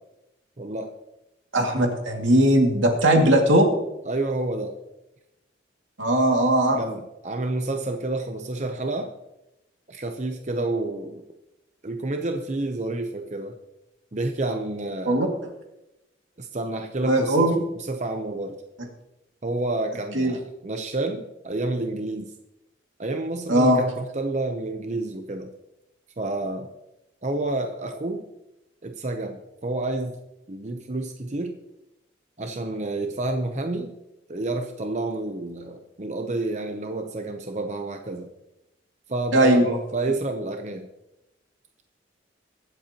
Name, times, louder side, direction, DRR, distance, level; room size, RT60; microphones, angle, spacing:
voice 1, 0.6-0.9 4.1-4.7 6.8-9.1 9.9-11.2 11.8-13.6 14.1-15.2 16.4-18.6 19.4-22.3 23.0-25.5 26.2-26.7 27.2-28.2 28.8-30.2 30.5-31.6 32.4-34.0 34.3-38.3 39.1-40.9, right 2 dB, 35° right, 5 dB, 0.7 m, -29 dB
voice 2, 1.5-3.7 6.0-6.8 15.1-15.3 17.0-17.5 20.1-20.3 23.5-23.8 39.3-39.8, right 1 dB, 85° right, 1 dB, 2.3 m, -19 dB
23.0 x 7.9 x 3.0 m, 0.92 s
head